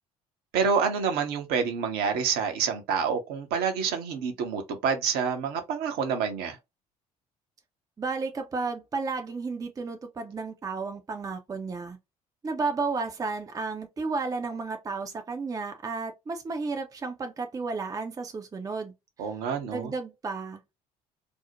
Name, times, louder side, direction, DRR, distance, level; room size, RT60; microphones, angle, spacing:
voice 1, 0.5-6.6 19.2-19.9, right 6 dB, 60° right, 0.7 m, -27 dB
voice 2, 8.0-12.0 12.4-18.9 19.7-20.8, right 4 dB, 20° right, 0.5 m, -32 dB
2.5 x 2.0 x 2.8 m
figure-of-eight pair, 55°, 19 cm